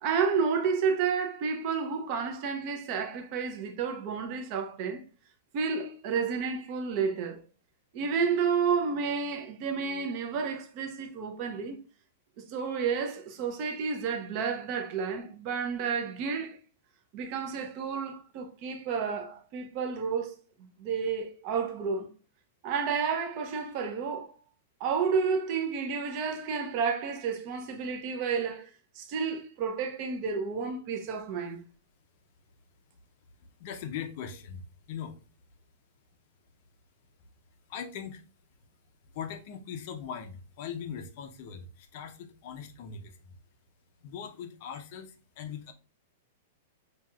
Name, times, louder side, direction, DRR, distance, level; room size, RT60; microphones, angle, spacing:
voice 1, 0.0-5.0 5.5-7.4 7.9-11.8 12.4-16.6 17.1-22.1 22.6-24.4 24.8-28.7 28.9-31.6, right 6 dB, 30° right, 0.6 m, -31 dB
voice 2, 33.6-35.2 37.7-38.2 39.1-43.3 44.0-45.7, left 7 dB, 40° left, 0.6 m, -40 dB
5.7 x 2.8 x 2.3 m
supercardioid pair, 175°, 0 cm